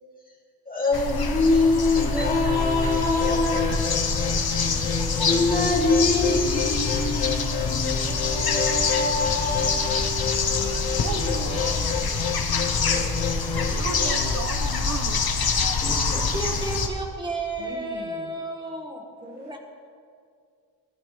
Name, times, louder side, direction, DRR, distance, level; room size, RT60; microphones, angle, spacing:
voice 1, 0.7-4.2 4.7-10.2 11.7-12.1 12.8-13.4 15.8-16.5, left 3 dB, 20° left, -3 dB, 2.5 m, -25 dB
sound 1, 0.9-16.9, left 4 dB, 60° left, 1.3 m, -26 dB
sound 2, 2.0-14.5, left 6 dB, 85° left, 1.0 m, -31 dB
sound 3, 10.6-11.9 13.7-15.1, right 4 dB, 40° right, 0.9 m, -34 dB
voice 2, 16.3-19.6, right 2 dB, 10° right, 0 dB, 1.7 m, -32 dB
voice 3, 17.6-18.4 19.3-19.6, right 2 dB, 75° right, 2 dB, 1.7 m, -41 dB
20.5 x 11.0 x 3.3 m, 2.2 s
wide cardioid pair, 135°, 42 cm